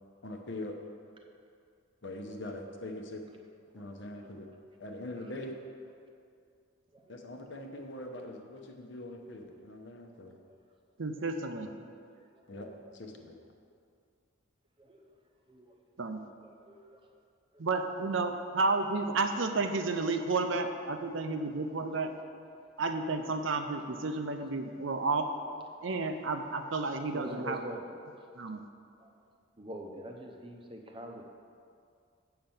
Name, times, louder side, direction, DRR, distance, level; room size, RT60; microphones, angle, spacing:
voice 1, 0.2-0.8 2.0-3.2 3.7-4.5 4.8-5.6 7.1-10.4 12.5-13.3, left 1 dB, 60° left, 3 dB, 0.9 m, -42 dB
voice 2, 6.9-7.4 8.5-8.6 10.3-10.6 11.2-11.3 11.5-12.0 12.5-12.7 14.8-15.0 15.5-15.7 16.4-17.0 17.5-17.8 20.9-21.4 21.8-22.2 22.5-22.6 24.3-24.4 25.5-25.6 27.1-27.9 28.2-28.4 29.0-29.1 29.6-31.2, right 1 dB, 25° right, 2 dB, 0.7 m, -46 dB
voice 3, 11.0-11.7 16.0-16.2 17.6-22.1 22.8-25.3 25.8-27.6 28.4-28.6, right 3 dB, 65° right, 6 dB, 0.6 m, -31 dB
7.8 x 5.8 x 7.1 m, 2.3 s
head